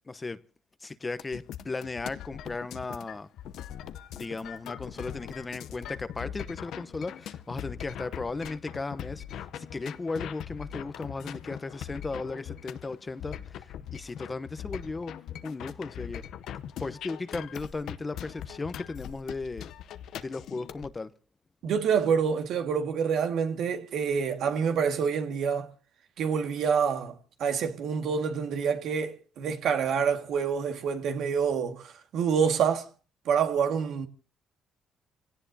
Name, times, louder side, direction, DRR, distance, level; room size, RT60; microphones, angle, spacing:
voice 1, 0.1-0.4 0.8-3.3 4.1-15.1 15.4-16.2 16.8-19.7 20.1-21.1, left 3 dB, 25° left, 0.9 m, -36 dB
sound 1, 1.2-20.9, left 10 dB, 75° left, 0.8 m, -41 dB
voice 2, 21.6-25.7 26.2-32.9 33.3-34.1, right 6 dB, 75° right, 1.9 m, -27 dB
26.0 x 17.5 x 2.8 m
cardioid pair, 90°, 0 cm